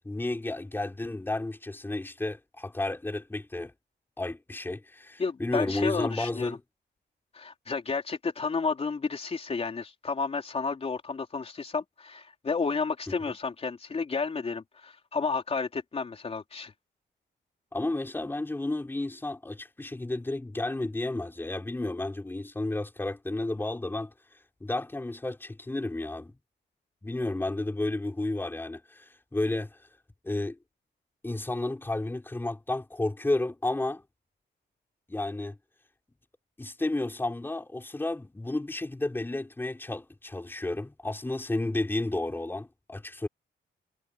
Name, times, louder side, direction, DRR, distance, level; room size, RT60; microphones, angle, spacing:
voice 1, 0.0-3.7 4.2-6.6 13.2-13.3 17.7-24.1 24.6-26.3 27.0-29.8 30.2-30.6 31.2-34.0 35.1-35.6 36.6-43.3, left 2 dB, 10° left, 3.6 m, -32 dB
voice 2, 5.2-6.6 7.3-16.7, left 4 dB, 30° left, 3.8 m, -31 dB
wide cardioid pair, 155°, 19 cm